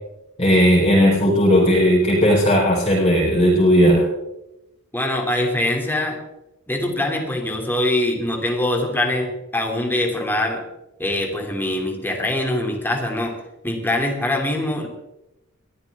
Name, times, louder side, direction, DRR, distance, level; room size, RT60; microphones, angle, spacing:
voice 1, 0.4-4.1, equal, 25° left, -6 dB, 4.2 m, -16 dB
voice 2, 4.9-6.2 6.7-10.6 11.0-13.3 13.6-14.9, left 1 dB, 10° left, 1 dB, 2.7 m, -23 dB
21.5 x 14.0 x 3.6 m, 0.91 s
head